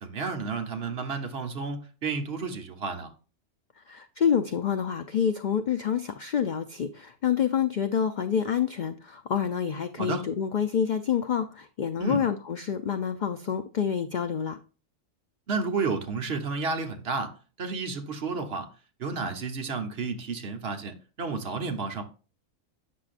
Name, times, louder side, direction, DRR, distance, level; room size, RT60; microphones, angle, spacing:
voice 1, 0.0-3.1 10.0-10.2 12.0-12.2 15.5-17.3 17.6-18.7 19.0-22.0, right 4 dB, 55° right, 1.1 m, -31 dB
voice 2, 3.8-14.6, left 8 dB, 75° left, 0.4 m, -27 dB
8.4 x 6.2 x 2.4 m
omnidirectional pair, 1.4 m